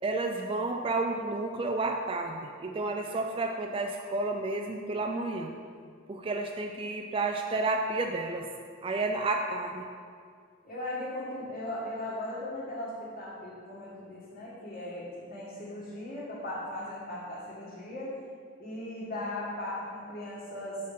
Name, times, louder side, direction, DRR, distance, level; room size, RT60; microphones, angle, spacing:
voice 1, 0.0-5.5 6.1-8.5 8.8-9.9, right 2 dB, 25° right, 3 dB, 0.4 m, -31 dB
voice 2, 10.6-18.2 18.6-20.8, left 1 dB, 45° left, -10 dB, 1.9 m, -38 dB
6.6 x 6.6 x 5.1 m, 2.2 s
head